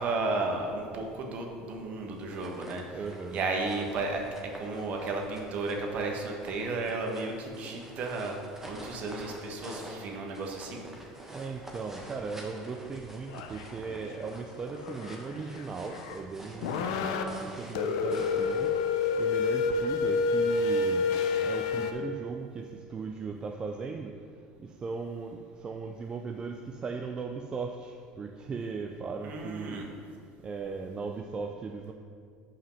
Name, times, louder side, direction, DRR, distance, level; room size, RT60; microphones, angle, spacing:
voice 1, 0.0-3.0 3.3-10.8 29.2-29.8, right 3 dB, 50° right, 2 dB, 1.3 m, -33 dB
sound 1, 2.2-19.2, right 1 dB, 10° right, 1.3 m, -48 dB
voice 2, 2.9-3.4 5.1-5.2 11.3-18.7 19.2-21.1 21.4-24.1 24.6-29.8 30.4-31.9, right 4 dB, 30° right, 4 dB, 0.4 m, -38 dB
sound 2, 13.3-13.7 14.1-14.3 14.7-16.2 16.6-17.2 17.8-21.9, left 4 dB, 80° left, 0.6 m, -29 dB
5.9 x 4.9 x 5.7 m, 2.2 s
supercardioid pair, 95°, 3 cm